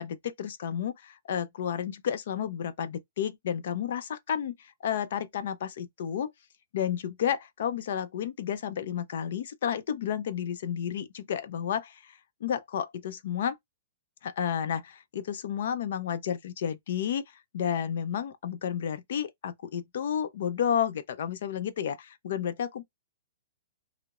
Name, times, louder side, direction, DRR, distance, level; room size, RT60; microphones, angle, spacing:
voice 1, 0.0-6.3 6.7-13.5 14.2-17.2 17.5-22.8, left 8 dB, 55° left, 0.5 m, -31 dB
2.3 x 2.0 x 2.8 m
hypercardioid pair, 170°, 0 cm